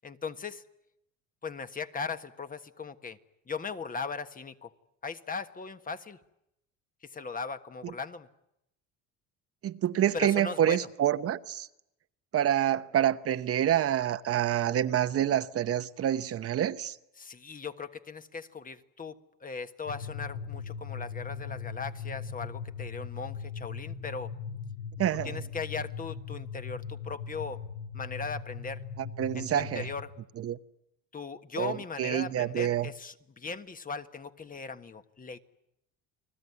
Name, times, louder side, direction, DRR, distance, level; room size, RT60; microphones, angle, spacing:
voice 1, 0.0-0.6 1.4-3.2 3.5-4.7 5.0-6.2 7.0-8.3 10.1-10.9 17.2-19.1 19.4-24.3 25.2-27.6 27.9-28.8 29.3-30.1 31.1-35.4, left 5 dB, 25° left, 1.5 m, -38 dB
voice 2, 9.6-11.7 12.3-17.0 25.0-25.4 29.0-29.9 30.4-30.6 31.6-32.9, right 11 dB, 45° right, 1.1 m, -27 dB
sound 1, 19.9-30.1, left 6 dB, 65° left, 5.3 m, -39 dB
30.0 x 20.0 x 9.7 m
cardioid pair, 110°, 31 cm